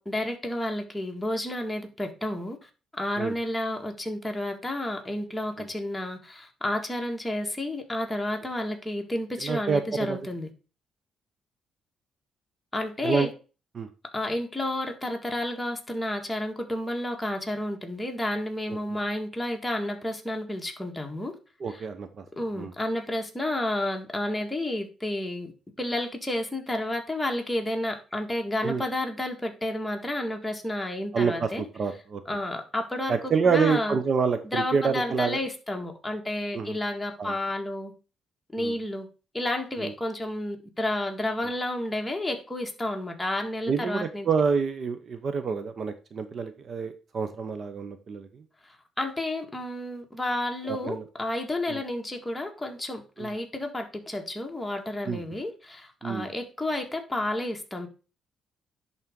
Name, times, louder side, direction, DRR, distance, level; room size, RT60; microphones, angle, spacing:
voice 1, 0.0-10.5 12.7-13.3 14.1-21.3 21.7-21.8 22.4-25.5 25.8-31.6 32.3-34.0 34.4-37.9 38.5-39.1 39.3-44.3 49.0-57.9, left 1 dB, 10° left, 1.8 m, -31 dB
voice 2, 9.4-10.2 13.0-13.3 13.7-13.9 18.7-18.8 21.6-22.2 22.6-22.7 28.6-28.8 31.1-32.2 33.1-35.4 36.5-36.8 37.2-37.3 38.6-38.8 39.8-39.9 43.7-48.4 50.7-51.0 51.7-51.8 53.2-53.3 55.1-55.2 56.0-56.3, right 5 dB, 50° right, 0.8 m, -27 dB
10.5 x 4.1 x 3.7 m
cardioid pair, 90°, 0 cm